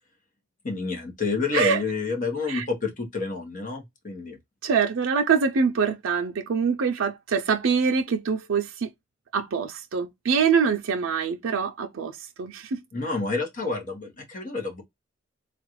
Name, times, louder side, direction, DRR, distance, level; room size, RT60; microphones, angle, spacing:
voice 1, 0.6-4.4 12.9-14.8, left 3 dB, 40° left, 1.1 m, -29 dB
voice 2, 4.6-8.9 9.3-12.8, right 6 dB, 80° right, 0.4 m, -24 dB
3.7 x 2.4 x 3.0 m
head